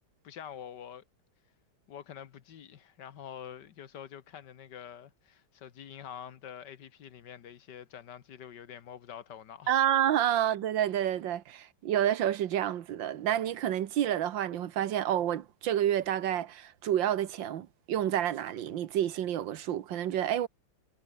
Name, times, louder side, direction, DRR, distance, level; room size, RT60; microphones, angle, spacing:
voice 1, 0.2-1.0 1.9-9.8, left 9 dB, 70° left, 1.8 m, -46 dB
voice 2, 9.7-20.5, right 11 dB, 85° right, 1.8 m, -29 dB
omnidirectional pair, 2.0 m